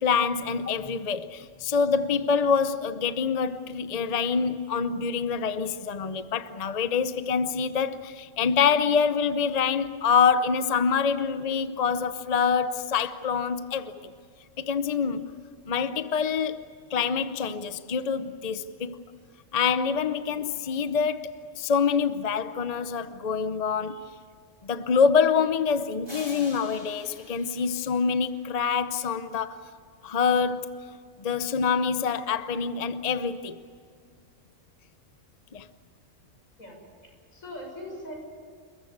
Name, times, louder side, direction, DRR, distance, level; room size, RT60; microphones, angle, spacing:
voice 1, 0.0-14.1 14.6-15.3 15.6-16.7 16.9-19.0 19.5-24.1 24.6-29.6 30.0-33.6 35.5-35.7, left 6 dB, 35° left, 0.7 m, -26 dB
sound 1, 26.1-28.9, left 1 dB, 20° left, 4.2 m, -46 dB
voice 2, 37.0-38.1, left 1 dB, 85° left, 7.1 m, -41 dB
29.0 x 14.5 x 9.4 m
omnidirectional pair, 1.4 m